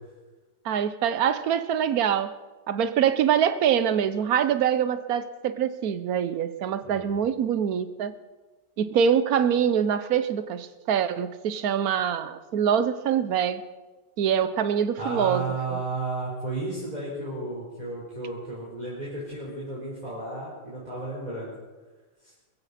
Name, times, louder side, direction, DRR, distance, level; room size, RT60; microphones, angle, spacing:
voice 1, 0.6-2.3 2.7-8.1 8.8-13.6 14.2-15.8, right 8 dB, 60° right, 13 dB, 1.1 m, -24 dB
voice 2, 15.0-21.5 22.2-22.3, right 2 dB, 20° right, -7 dB, 4.4 m, -33 dB
22.0 x 15.0 x 4.2 m, 1.2 s
omnidirectional pair, 2.0 m